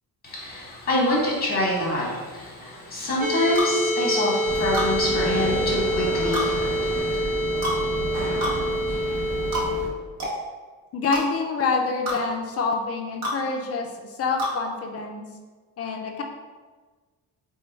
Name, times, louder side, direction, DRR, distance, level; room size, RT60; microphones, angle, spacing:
voice 1, 0.3-2.2 2.9-6.4 6.8-7.0, left 1 dB, 25° left, -4 dB, 1.0 m, -25 dB
sound 1, 3.2-9.7, equal, 25° right, 0.5 m, -26 dB
sound 2, 3.6-3.7 4.7-4.9 6.3-6.5 7.6-7.8 8.4-8.6 9.5-9.7 10.2-10.4 11.1-11.2 12.1-12.2 13.2-13.4 14.4-14.6, equal, 45° right, 1.0 m, -27 dB
sound 3, 4.4-9.9, right 2 dB, 80° right, 0.8 m, -32 dB
voice 2, 10.9-15.3 15.8-16.2, left 4 dB, 40° left, 3 dB, 0.4 m, -27 dB
4.2 x 2.3 x 3.2 m, 1.4 s
cardioid pair, 160°, 37 cm